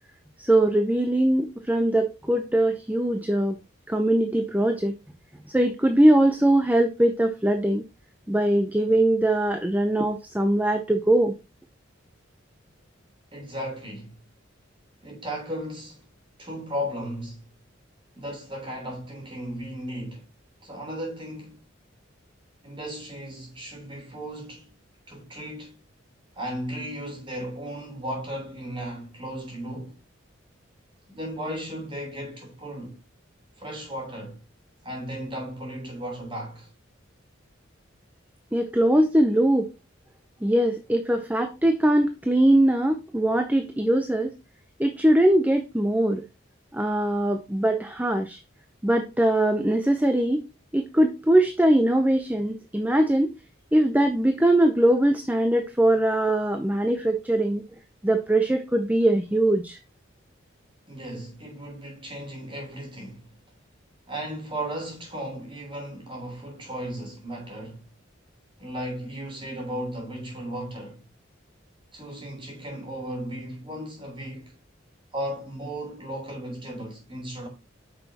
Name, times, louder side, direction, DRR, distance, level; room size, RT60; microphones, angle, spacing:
voice 1, 0.4-3.6 3.9-5.0 5.5-7.8 8.3-11.3 38.5-39.7 40.4-44.4 44.8-46.2 46.7-48.4 48.8-50.4 50.7-53.3 53.7-57.6 58.0-59.8, right 1 dB, 10° right, 0.6 m, -21 dB
voice 2, 13.3-14.2 15.0-16.0 16.4-17.5 18.2-20.2 20.6-21.6 22.6-24.7 25.1-25.7 26.4-30.0 31.1-33.0 33.6-34.4 34.8-36.7 60.9-63.3 64.1-67.8 68.6-71.0 71.9-74.5 75.1-77.5, equal, 25° right, 3.6 m, -35 dB
9.2 x 6.0 x 2.9 m
head